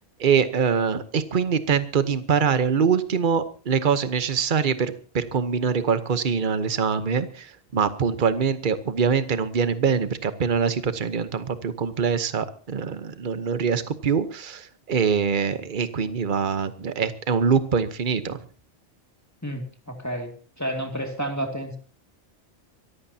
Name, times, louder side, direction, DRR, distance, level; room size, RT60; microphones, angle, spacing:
voice 1, 0.2-18.4, right 6 dB, 50° right, 12 dB, 1.1 m, -24 dB
voice 2, 19.4-21.8, right 1 dB, 15° left, 4 dB, 2.2 m, -31 dB
25.0 x 14.5 x 2.8 m, 0.37 s
omnidirectional pair, 1.2 m